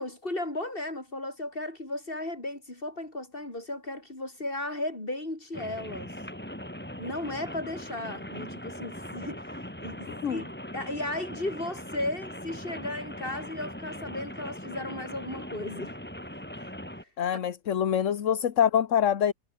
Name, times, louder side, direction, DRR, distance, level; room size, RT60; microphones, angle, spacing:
voice 1, 0.0-6.1 7.0-10.5 10.7-16.0 16.6-16.7 17.3-17.4, left 1 dB, 30° left, 5.8 m, -35 dB
Rain, 5.5-17.0, equal, 5° left, 3.4 m, -40 dB
voice 2, 10.1-10.4 17.2-19.3, left 9 dB, 50° left, 1.2 m, -25 dB
omnidirectional pair, 1.8 m